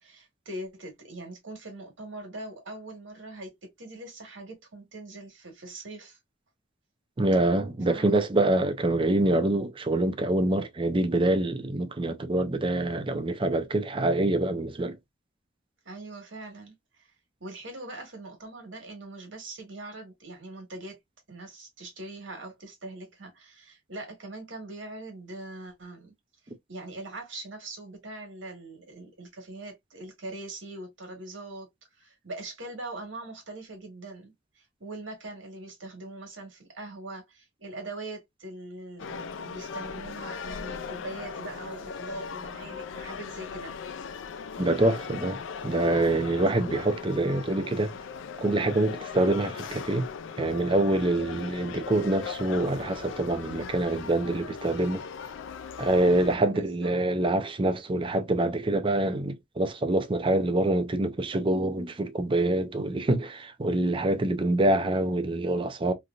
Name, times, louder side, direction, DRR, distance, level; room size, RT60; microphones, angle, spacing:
voice 1, 0.0-6.2 7.9-8.2 15.8-17.1 17.4-21.0 21.3-26.1 26.7-31.7 32.0-43.7 56.4-56.9, right 2 dB, 85° right, 1.6 m, -42 dB
voice 2, 7.2-15.0 44.6-47.9 48.4-50.1 50.4-55.0 55.8-65.9, right 2 dB, 30° right, 0.5 m, -25 dB
sound 1, 39.0-56.4, left 6 dB, 85° left, 0.4 m, -39 dB
3.2 x 2.6 x 2.4 m
head